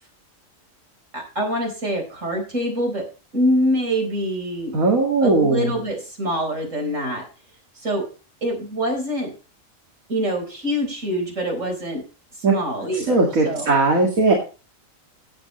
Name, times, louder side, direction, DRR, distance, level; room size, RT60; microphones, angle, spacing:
voice 1, 1.1-3.1 3.3-4.7 5.2-7.2 7.8-8.1 8.4-9.3 10.1-12.0 12.4-13.7, equal, 65° right, 2 dB, 4.7 m, -25 dB
voice 2, 4.7-5.7 12.4-12.5 13.1-14.3, right 3 dB, 85° right, -1 dB, 2.5 m, -18 dB
16.0 x 8.3 x 3.1 m, 0.34 s
omnidirectional pair, 1.4 m